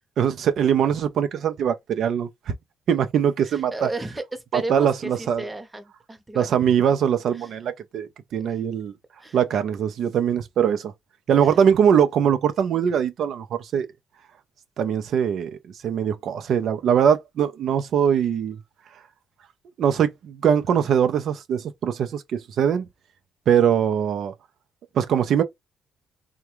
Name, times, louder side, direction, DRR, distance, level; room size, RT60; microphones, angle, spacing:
voice 1, 0.2-2.5 2.9-3.9 4.5-5.5 6.3-8.9 9.3-10.9 11.3-13.9 14.8-15.6 15.8-18.6 19.8-22.9 23.5-24.3 25.0-25.4, right 8 dB, 70° right, 0.5 m, -22 dB
voice 2, 3.4-6.5 7.3-7.5 8.4-8.6 9.2-9.4 11.4-11.6, right 2 dB, 15° right, 0.8 m, -34 dB
3.5 x 2.2 x 3.0 m
cardioid pair, 90°, 0 cm